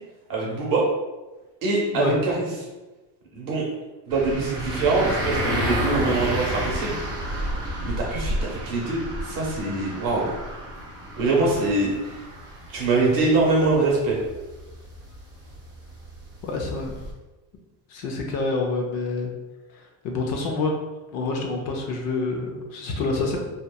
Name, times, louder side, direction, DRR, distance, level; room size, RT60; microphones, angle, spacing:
voice 1, 0.3-0.9 1.6-2.5 3.3-3.6 4.1-7.0 7.8-10.3 11.2-12.1 12.7-14.2, right 3 dB, 45° right, -3 dB, 0.8 m, -23 dB
sound 1, 4.1-17.1, equal, 10° right, 0.9 m, -31 dB
voice 2, 16.4-17.0 17.9-19.3 20.0-20.7 21.1-23.4, left 3 dB, 55° left, 1 dB, 0.5 m, -27 dB
2.8 x 2.1 x 2.2 m, 1.1 s
cardioid pair, 155°, 46 cm